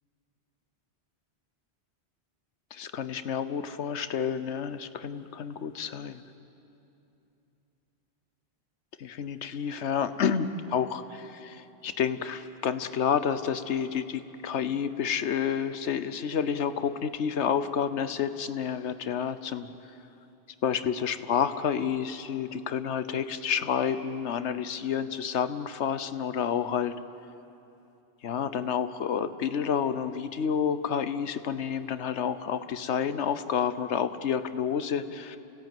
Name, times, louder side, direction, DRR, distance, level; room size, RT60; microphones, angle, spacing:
voice 1, 2.7-6.2 9.0-19.7 20.6-27.0 28.2-35.4, left 7 dB, 90° left, 12 dB, 1.2 m, -29 dB
29.5 x 17.0 x 9.2 m, 2.8 s
omnidirectional pair, 1.1 m